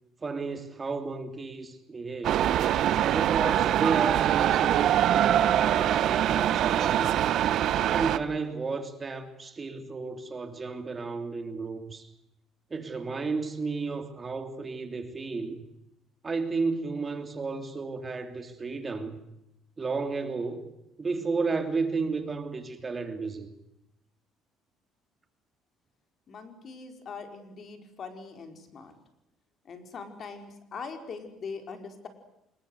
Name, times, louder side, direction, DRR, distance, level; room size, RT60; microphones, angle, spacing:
voice 1, 0.2-2.5 3.1-7.2 7.9-12.1 12.7-15.6 16.2-19.2 19.8-20.7 21.0-23.5, right 4 dB, 25° right, 7 dB, 3.0 m, -33 dB
sound 1, 2.2-8.2, right 11 dB, 65° right, 1.2 m, -24 dB
voice 2, 26.3-28.9 29.7-32.1, left 5 dB, 45° left, 6 dB, 5.0 m, -42 dB
25.5 x 22.0 x 8.2 m, 0.85 s
cardioid pair, 110°, 0 cm